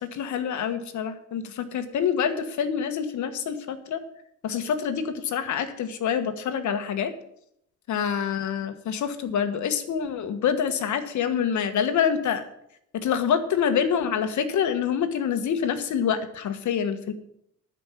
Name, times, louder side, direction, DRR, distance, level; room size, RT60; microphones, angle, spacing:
voice 1, 0.1-4.0 4.4-7.1 7.9-12.4 12.9-17.1, left 7 dB, 70° left, 8 dB, 1.5 m, -26 dB
11.5 x 5.3 x 8.6 m, 0.75 s
cardioid pair, 90°, 30 cm